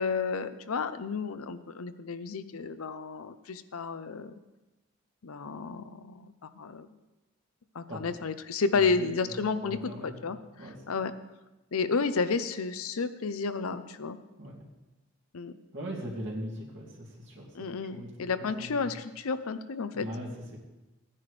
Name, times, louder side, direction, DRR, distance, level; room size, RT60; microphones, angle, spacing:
voice 1, 0.0-4.4 5.2-6.9 7.7-11.1 11.7-14.2 15.3-15.6 17.5-20.1, left 4 dB, 85° left, 12 dB, 0.6 m, -31 dB
voice 2, 8.7-9.2 9.6-10.1 10.6-10.9 14.4-14.6 15.7-18.8 19.9-20.3, equal, 55° right, -4 dB, 2.6 m, -40 dB
16.0 x 9.8 x 3.3 m, 1.1 s
head